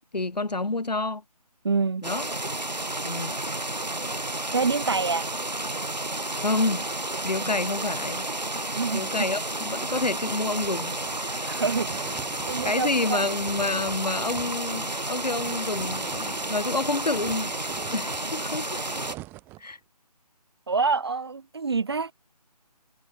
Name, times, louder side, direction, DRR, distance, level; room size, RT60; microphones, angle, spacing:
voice 1, 0.1-1.2 2.0-2.3 3.0-3.3 6.4-6.9 7.2-8.3 8.9-11.0 12.6-17.5 17.9-18.8 19.6-19.8, left 3 dB, 75° left, 2.7 m, -28 dB
voice 2, 1.6-2.0 4.5-5.3 8.6-9.1 11.2-12.0 12.5-13.3 20.7-22.1, right 4 dB, 40° right, 0.5 m, -27 dB
sound 1, 2.0-19.2, right 2 dB, 90° right, 5.0 m, -31 dB
sound 2, 10.6-16.7 17.0-19.7, right 19 dB, 10° right, 2.0 m, -46 dB
figure-of-eight pair, 160°, 21 cm